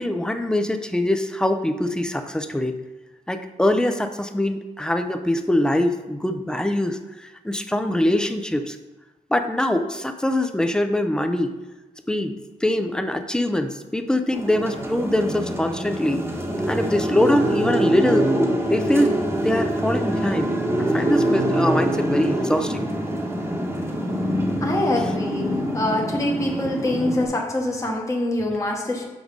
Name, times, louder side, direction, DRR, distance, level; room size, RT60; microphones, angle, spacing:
voice 1, 0.0-2.8 3.3-8.8 9.3-11.6 12.1-16.3 16.7-18.3 18.7-22.9, left 1 dB, 5° left, 7 dB, 0.6 m, -23 dB
sound 1, 14.3-27.3, right 1 dB, 20° right, 1.2 m, -24 dB
voice 2, 24.6-25.5 25.7-29.1, left 1 dB, 20° left, -1 dB, 1.2 m, -24 dB
6.2 x 4.8 x 5.2 m, 1.1 s
cardioid pair, 100°, 14 cm